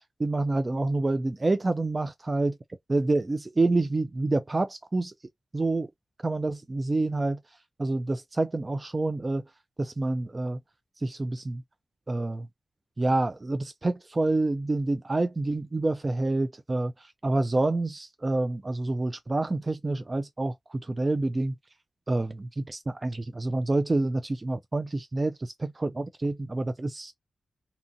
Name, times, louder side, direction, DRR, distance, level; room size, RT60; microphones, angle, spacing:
voice 1, 0.2-2.6 2.9-5.1 5.5-5.9 6.2-7.4 7.8-9.4 9.8-10.6 11.0-11.6 12.1-12.5 13.0-21.5 22.1-27.1, right 2 dB, 25° right, 0.3 m, -27 dB
2.7 x 2.6 x 2.5 m
wide cardioid pair, 120°, 0 cm